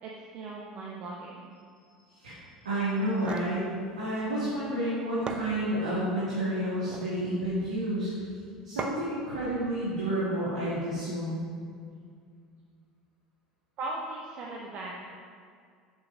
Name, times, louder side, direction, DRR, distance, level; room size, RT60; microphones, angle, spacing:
voice 1, 0.0-1.5 13.8-14.9, right 2 dB, 45° right, -2 dB, 1.1 m, -38 dB
voice 2, 2.6-3.7 4.0-8.1 8.6-11.4, right 1 dB, 75° right, -10 dB, 2.4 m, -30 dB
sound 1, 3.0-3.6 4.8-4.9 5.3-6.0 6.7-7.2 8.8-9.2, right 4 dB, 30° right, 0.7 m, -37 dB
7.5 x 6.6 x 5.2 m, 2.2 s
figure-of-eight pair, 70°, 3 cm